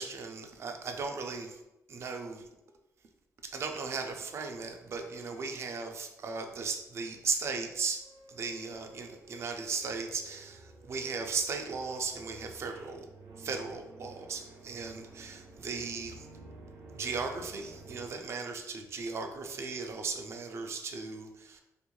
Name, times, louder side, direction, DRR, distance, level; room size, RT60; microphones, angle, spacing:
voice 1, 0.0-1.6 1.9-2.5 3.4-13.1 13.4-16.3 16.9-21.6, right 4 dB, 50° right, 4 dB, 0.3 m, -37 dB
sound 1, 8.0-18.1, right 2 dB, 80° right, 0.6 m, -52 dB
2.5 x 2.2 x 3.0 m, 0.95 s
cardioid pair, 125°, 6 cm